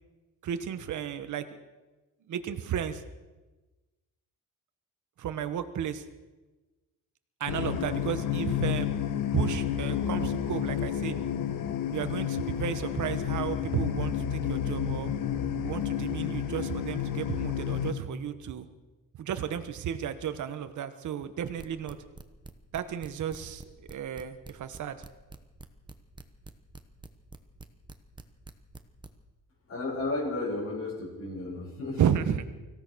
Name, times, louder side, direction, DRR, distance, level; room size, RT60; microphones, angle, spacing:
voice 1, 0.4-1.4 2.3-3.0 5.2-6.0 7.4-8.9 9.3-11.2 11.9-15.1 15.6-18.7 19.2-22.0 22.7-25.0 32.0-32.4, right 9 dB, 60° right, 9 dB, 1.4 m, -33 dB
sound 1, 7.5-17.9, left 9 dB, 70° left, 1.5 m, -30 dB
sound 2, 21.6-29.1, right 3 dB, 15° right, 1.1 m, -45 dB
voice 2, 29.7-32.1, left 2 dB, 50° left, -5 dB, 6.6 m, -33 dB
25.0 x 16.5 x 6.3 m, 1.2 s
wide cardioid pair, 175°, 33 cm